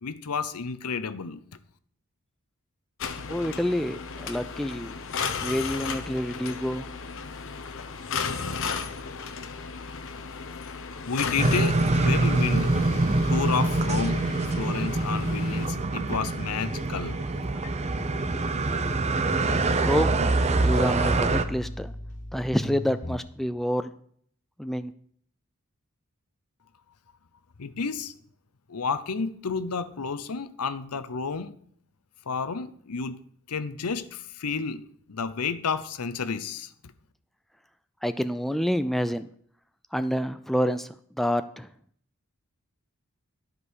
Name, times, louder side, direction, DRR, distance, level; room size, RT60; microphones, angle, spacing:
voice 1, 0.0-1.4 11.0-12.7 13.3-14.2 14.6-17.3 27.6-28.1 28.7-31.5 32.3-33.2 33.5-36.7, left 5 dB, 90° left, 0.7 m, -31 dB
sound 1, 3.0-15.7, left 5 dB, 60° left, 0.9 m, -35 dB
voice 2, 3.3-4.9 5.4-6.9 19.8-20.3 20.6-21.9 22.3-23.9 24.6-24.9 38.0-39.3 39.9-40.9 41.2-41.7, equal, ahead, 0.3 m, -28 dB
sound 2, 11.4-21.4, right 2 dB, 30° right, 0.6 m, -25 dB
sound 3, 19.7-19.8 19.9-23.2, left 1 dB, 35° left, 1.0 m, -35 dB
12.0 x 5.4 x 6.3 m
head